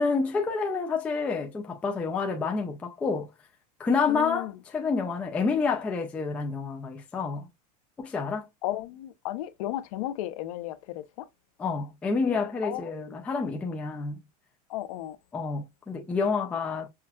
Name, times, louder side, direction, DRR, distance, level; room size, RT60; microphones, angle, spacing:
voice 1, 0.0-3.3 3.8-7.5 8.0-8.5 11.6-14.2 15.3-16.9, left 4 dB, 5° left, 0.3 m, -28 dB
voice 2, 4.1-4.5 8.6-10.8 12.6-13.2 14.7-15.2, left 14 dB, 60° left, 0.5 m, -34 dB
5.6 x 2.3 x 2.2 m
supercardioid pair, 170°, 20 cm